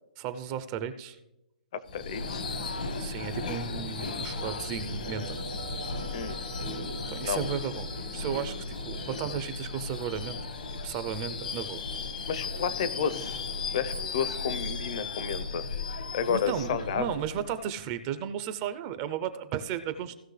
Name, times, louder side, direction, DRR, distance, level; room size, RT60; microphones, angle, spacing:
voice 1, 0.2-1.2 3.0-5.4 7.1-10.4 10.8-11.8 16.3-20.1, right 9 dB, 25° right, 11 dB, 0.6 m, -34 dB
voice 2, 1.7-2.4 6.1-6.7 7.2-7.4 12.3-13.4 13.7-15.6 16.1-17.1, left 7 dB, 45° left, 15 dB, 0.7 m, -31 dB
Subway metro underground / Screech, 1.9-17.8, left 4 dB, 70° left, 1.3 m, -36 dB
sound 1, 4.7-14.1, right 6 dB, 85° right, 1.4 m, -49 dB
16.5 x 6.2 x 3.3 m, 0.89 s
hypercardioid pair, 160°, 5 cm